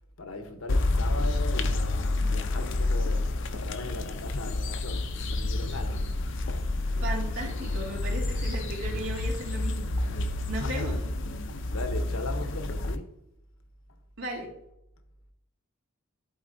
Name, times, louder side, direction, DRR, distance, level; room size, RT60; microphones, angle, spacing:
voice 1, 0.2-6.1 10.5-10.9 11.5-13.2, left 3 dB, 80° left, 0.9 m, -39 dB
sound 1, 0.7-12.9, left 2 dB, 60° left, 0.5 m, -29 dB
voice 2, 7.0-9.9 10.5-11.0 14.2-14.5, right 1 dB, 85° right, 2.3 m, -35 dB
12.0 x 4.2 x 2.6 m
head